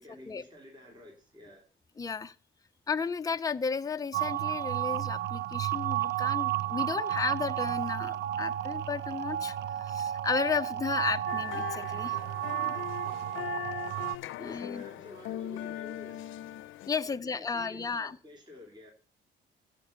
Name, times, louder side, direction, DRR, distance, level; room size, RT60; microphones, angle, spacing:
voice 1, 0.0-1.7 12.7-13.7 14.3-16.4 17.1-18.9, left 1 dB, 20° right, 0 dB, 3.4 m, -51 dB
voice 2, 2.0-2.3 2.9-12.2 12.5-12.8 14.4-14.8 16.9-18.2, left 5 dB, 20° left, 9 dB, 0.6 m, -33 dB
sound 1, 4.1-14.2, right 12 dB, 60° right, 0.5 m, -32 dB
sound 2, 11.3-16.9, left 13 dB, 85° left, 0.7 m, -40 dB
15.0 x 5.3 x 6.8 m, 0.42 s
cardioid pair, 90°, 20 cm